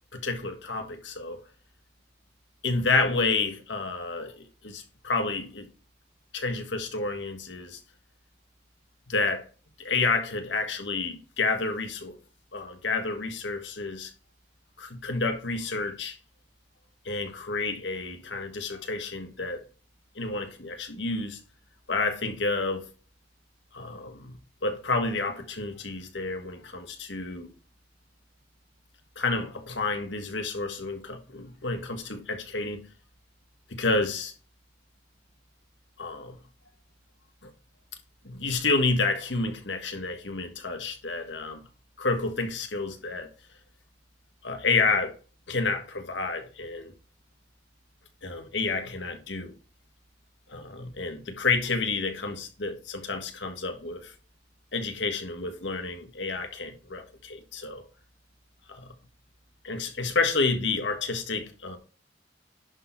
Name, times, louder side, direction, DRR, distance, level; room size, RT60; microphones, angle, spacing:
voice 1, 0.1-1.4 2.6-5.7 6.3-7.8 9.1-9.4 9.8-12.2 12.5-14.1 14.8-16.1 17.0-19.6 20.1-21.4 21.9-22.8 23.7-27.5 29.1-32.8 33.7-34.3 36.0-36.4 37.4-37.5 38.2-41.6 42.0-43.3 44.4-45.1 45.5-46.9 48.2-49.5 50.5-54.1 54.7-57.8 58.7-58.9 59.6-61.8, left 3 dB, 80° left, 1.7 m, -30 dB
10.5 x 4.3 x 4.1 m
head